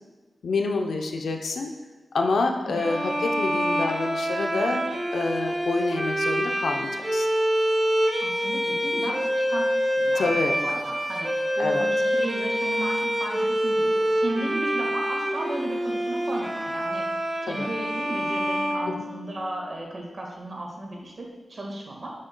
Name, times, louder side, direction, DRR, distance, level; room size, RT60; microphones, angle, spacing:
voice 1, 0.4-1.7 2.1-4.9 5.1-7.3 10.1-10.6 11.6-11.9 17.5-17.7 18.9-19.0, left 3 dB, 85° left, 3 dB, 0.6 m, -27 dB
sound 1, 2.7-19.6, equal, 20° right, 0.9 m, -26 dB
voice 2, 8.2-22.1, right 1 dB, 50° right, -1 dB, 1.5 m, -35 dB
8.7 x 6.3 x 2.2 m, 1.3 s
wide cardioid pair, 105°, 0 cm